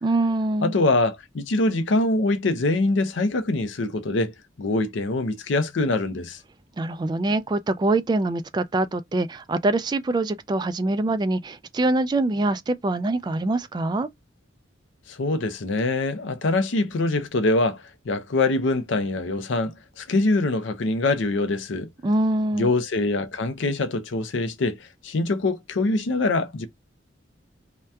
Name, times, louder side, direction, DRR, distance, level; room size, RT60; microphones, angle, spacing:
voice 1, 0.0-0.7 6.8-14.1 22.0-22.7, right 2 dB, 25° right, 0.3 m, -24 dB
voice 2, 0.6-4.3 4.6-6.4 15.1-21.9 22.5-26.7, left 2 dB, 85° left, 0.5 m, -24 dB
2.8 x 2.2 x 3.3 m
head